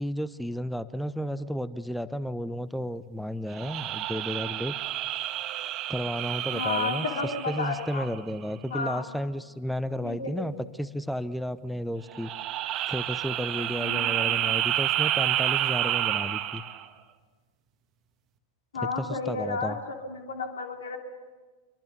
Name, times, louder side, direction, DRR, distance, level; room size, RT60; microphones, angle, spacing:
voice 1, 0.0-4.7 5.9-12.3 12.9-16.6 19.0-19.8, equal, ahead, 17 dB, 0.8 m, -33 dB
sound 1, 3.5-8.3 12.1-16.9, right 13 dB, 35° right, 1.6 m, -29 dB
voice 2, 6.5-8.1 8.7-9.1 10.0-10.5 13.8-14.1 18.7-21.0, left 4 dB, 65° left, 3 dB, 3.2 m, -32 dB
25.5 x 24.0 x 6.9 m, 1.4 s
figure-of-eight pair, 90°, 0 cm